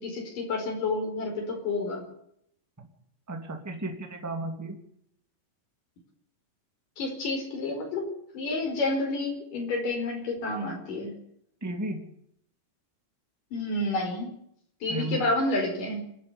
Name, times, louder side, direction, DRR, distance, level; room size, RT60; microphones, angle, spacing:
voice 1, 0.0-2.0 7.0-8.0 8.3-11.1 13.5-14.3 14.8-16.0, left 2 dB, 80° left, 2 dB, 6.5 m, -29 dB
voice 2, 3.3-4.8 11.6-12.0 14.9-15.2, right 2 dB, 5° right, 3 dB, 2.4 m, -33 dB
28.0 x 10.5 x 9.8 m, 0.71 s
omnidirectional pair, 3.7 m